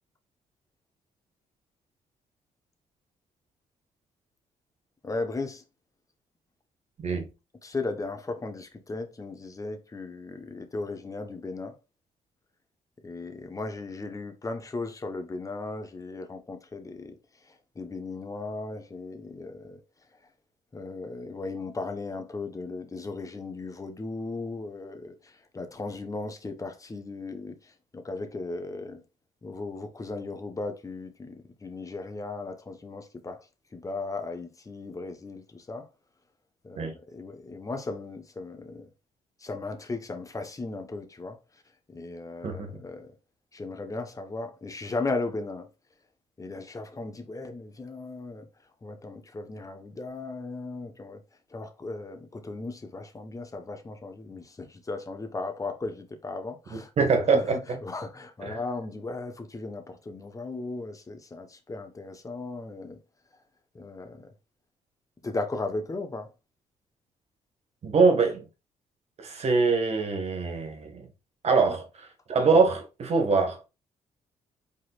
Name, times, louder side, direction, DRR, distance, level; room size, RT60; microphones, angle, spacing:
voice 1, 5.0-5.6 7.6-11.7 13.0-17.1 17.7-19.8 20.7-27.5 27.9-29.0 29.4-31.3 31.6-33.4 33.7-35.9 36.6-38.9 39.4-41.4 41.9-43.1 43.5-45.7 46.4-48.5 48.8-51.2 51.5-57.1 57.3-63.0 63.7-64.3 65.2-66.3, left 3 dB, 25° left, 1.1 m, -36 dB
voice 2, 42.4-42.8 56.7-57.8 58.4-58.6 67.8-68.5 69.2-71.1 71.4-71.8 72.3-73.7, right 4 dB, 55° right, 1.7 m, -24 dB
5.2 x 4.1 x 2.5 m
cardioid pair, 85°, 13 cm